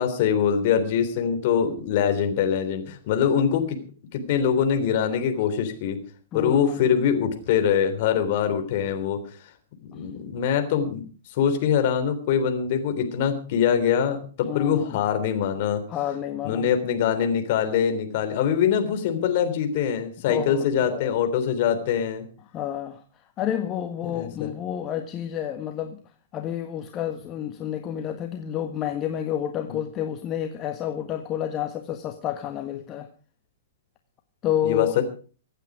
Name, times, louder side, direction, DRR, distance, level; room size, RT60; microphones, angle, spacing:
voice 1, 0.0-3.8 4.1-6.0 6.3-9.2 9.9-11.0 11.3-15.8 16.4-22.2 24.1-24.5 34.6-34.9, left 8 dB, 45° left, 6 dB, 3.5 m, -23 dB
voice 2, 6.3-6.8 9.9-10.0 14.4-15.0 15.9-16.7 20.3-21.2 22.5-23.0 23.4-26.0 26.3-33.1 34.4-34.9, left 10 dB, 30° left, 5 dB, 1.5 m, -29 dB
24.5 x 9.1 x 4.9 m, 0.40 s
figure-of-eight pair, 110°, 0 cm